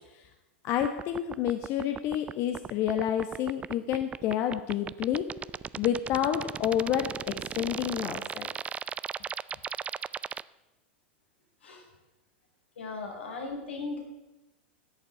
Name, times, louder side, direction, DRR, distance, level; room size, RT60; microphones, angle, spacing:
voice 1, 0.6-5.3 5.8-8.5, left 10 dB, 45° left, 7 dB, 1.1 m, -29 dB
sound 1, 0.8-10.4, right 7 dB, 20° right, 0.4 m, -36 dB
voice 2, 12.8-14.0, left 3 dB, 80° left, 1 dB, 4.6 m, -37 dB
11.5 x 8.2 x 8.4 m, 1.0 s
hypercardioid pair, 100°, 6 cm